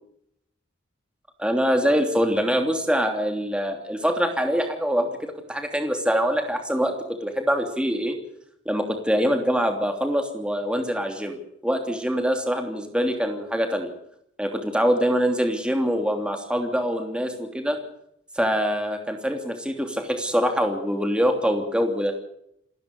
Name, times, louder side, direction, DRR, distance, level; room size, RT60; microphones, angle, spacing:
voice 1, 1.4-8.2 8.6-13.9 14.4-17.8 18.4-22.1, equal, 5° right, 5 dB, 3.0 m, -24 dB
27.5 x 13.5 x 6.9 m, 0.75 s
head